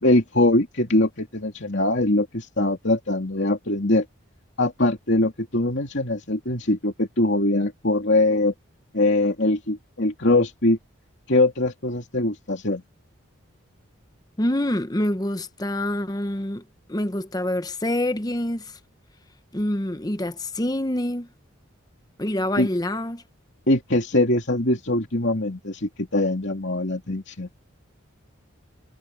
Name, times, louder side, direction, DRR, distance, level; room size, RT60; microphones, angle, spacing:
voice 1, 0.0-4.0 4.6-8.5 8.9-10.8 11.3-12.8 22.6-22.7 23.7-27.5, left 2 dB, 55° left, 3.0 m, -22 dB
voice 2, 14.4-16.6 16.9-18.8 19.5-21.3 22.2-23.2, left 1 dB, 20° left, 0.9 m, -26 dB
head